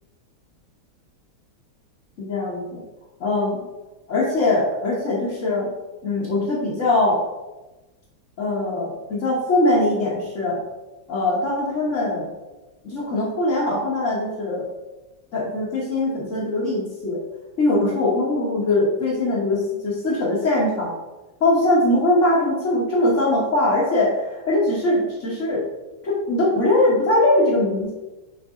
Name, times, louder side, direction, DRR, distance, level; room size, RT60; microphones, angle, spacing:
voice 1, 2.2-2.8 3.2-3.6 4.1-5.7 6.0-7.2 8.4-10.6 11.1-12.3 12.8-14.7 15.3-17.2 17.6-20.9 21.4-25.6 26.0-27.9, left 2 dB, 40° left, -7 dB, 1.6 m, -21 dB
7.3 x 5.1 x 3.8 m, 1.1 s
omnidirectional pair, 2.4 m